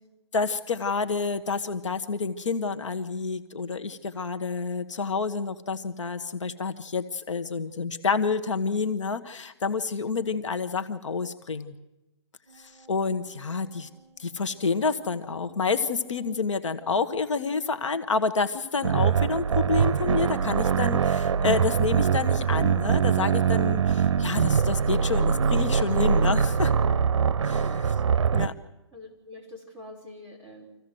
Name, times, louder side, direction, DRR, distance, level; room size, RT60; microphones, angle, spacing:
voice 1, 0.3-11.7 12.6-13.9 14.2-26.7 27.4-27.9 28.3-28.5, left 4 dB, 85° left, 9 dB, 1.4 m, -29 dB
sound 1, 12.4-21.3, right 4 dB, 20° right, 2.3 m, -57 dB
sound 2, 18.8-28.5, right 7 dB, 75° right, 0.7 m, -23 dB
voice 2, 28.9-30.7, left 1 dB, 10° left, -7 dB, 4.3 m, -45 dB
26.0 x 15.5 x 7.8 m, 1.0 s
hypercardioid pair, 175°, 15 cm